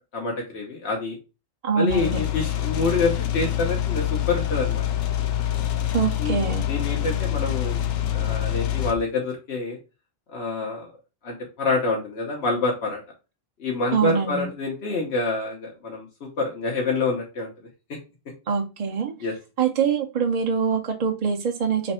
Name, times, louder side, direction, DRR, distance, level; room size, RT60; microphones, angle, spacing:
voice 1, 0.1-1.2 1.8-4.8 6.2-9.8 10.3-10.9 11.2-13.0 13.6-17.5 19.2-19.3, left 3 dB, 90° left, -1 dB, 1.3 m, -27 dB
voice 2, 1.6-2.2 5.9-6.7 13.9-14.5 18.5-19.1 19.6-21.9, right 6 dB, 45° right, 2 dB, 0.7 m, -24 dB
sound 1, 1.9-8.9, left 11 dB, 75° left, 0.8 m, -26 dB
3.4 x 3.2 x 4.2 m, 0.30 s
omnidirectional pair, 1.1 m